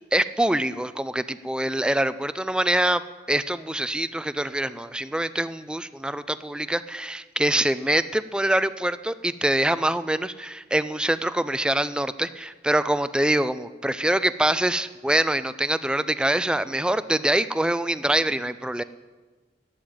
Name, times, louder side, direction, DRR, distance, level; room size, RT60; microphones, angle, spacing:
voice 1, 0.1-3.0 3.3-18.8, right 1 dB, 5° right, 14 dB, 0.3 m, -24 dB
12.0 x 9.3 x 8.8 m, 1.4 s
head